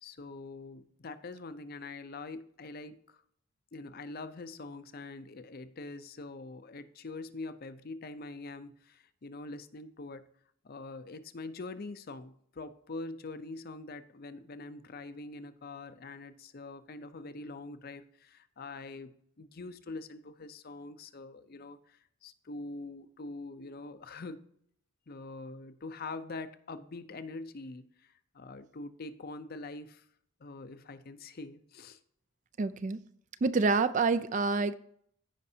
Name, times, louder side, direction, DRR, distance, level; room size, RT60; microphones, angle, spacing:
voice 1, 0.0-3.2 3.7-10.2 10.6-24.4 25.1-30.1 30.4-32.0, left 3 dB, 45° left, 0.5 m, -44 dB
voice 2, 32.6-33.0 33.4-34.8, right 4 dB, 35° right, 0.3 m, -27 dB
15.0 x 5.2 x 2.8 m
head